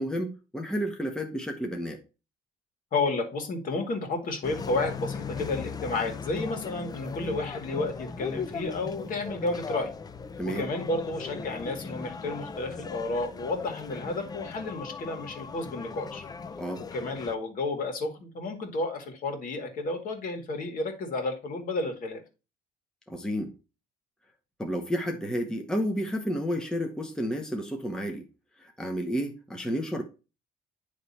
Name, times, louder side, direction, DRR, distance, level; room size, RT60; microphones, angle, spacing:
voice 1, 0.0-2.0 10.4-10.7 16.6-16.8 23.1-23.5 24.6-28.3 28.6-30.0, equal, 5° left, 0.9 m, -31 dB
voice 2, 2.9-9.9 10.6-16.2 16.9-22.2, left 2 dB, 55° left, 1.8 m, -31 dB
sound 1, 4.4-17.3, left 5 dB, 25° left, 0.5 m, -38 dB
9.4 x 3.3 x 4.2 m
cardioid pair, 110°, 17 cm